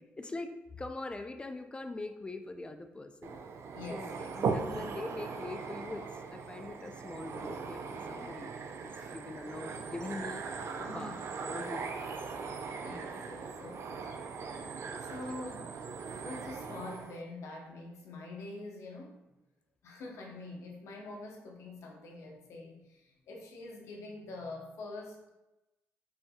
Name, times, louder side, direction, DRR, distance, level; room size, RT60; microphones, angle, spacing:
voice 1, 0.2-3.4 3.9-8.5 8.8-10.4 10.8-12.2 14.8-14.9 15.3-15.4, left 2 dB, 20° left, 7 dB, 0.4 m, -43 dB
sound 1, 3.2-17.2, right 5 dB, 60° right, 0.4 m, -39 dB
voice 2, 3.7-4.8 8.9-9.1 10.8-11.1 12.8-14.1 15.0-15.7 16.1-19.3 19.8-25.3, left 2 dB, 75° left, 0 dB, 0.8 m, -45 dB
5.6 x 2.7 x 2.2 m, 0.97 s
cardioid pair, 75°, 5 cm